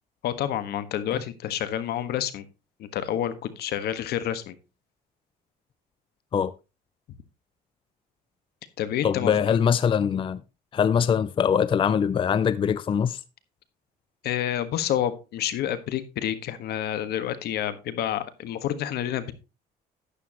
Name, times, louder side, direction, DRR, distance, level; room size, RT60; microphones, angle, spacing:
voice 1, 0.2-2.4 2.8-4.6 8.8-9.6 14.2-19.3, left 11 dB, 70° left, 1.4 m, -29 dB
voice 2, 9.0-10.4 10.7-13.2, left 7 dB, 30° left, 0.4 m, -23 dB
11.5 x 9.7 x 2.9 m
cardioid pair, 110°, 17 cm